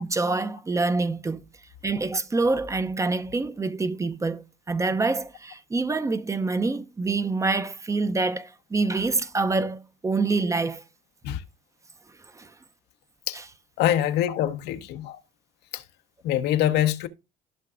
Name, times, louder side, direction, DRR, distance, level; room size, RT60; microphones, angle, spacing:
voice 1, 0.0-1.4 1.8-10.8 12.4-12.5 13.3-13.4, right 3 dB, 20° right, 0.5 m, -26 dB
voice 2, 13.8-15.2 15.7-15.8 16.2-17.1, left 12 dB, 80° left, 0.9 m, -24 dB
13.5 x 5.8 x 2.4 m
cardioid pair, 110°, 17 cm